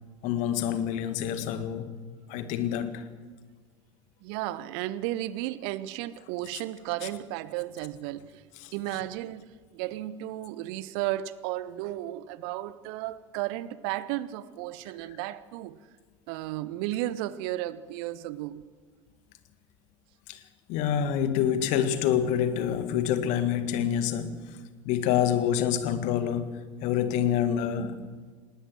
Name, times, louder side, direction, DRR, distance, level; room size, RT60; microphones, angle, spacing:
voice 1, 0.2-2.0 2.3-3.1 6.5-6.6 7.0-7.2 8.5-9.0 15.1-15.2 20.3-20.4 20.7-28.1, left 9 dB, 50° left, 1.7 m, -27 dB
voice 2, 4.2-8.4 8.7-15.8 16.3-18.7, right 15 dB, 50° right, 0.9 m, -34 dB
19.5 x 19.0 x 7.7 m
figure-of-eight pair, 75°, 16 cm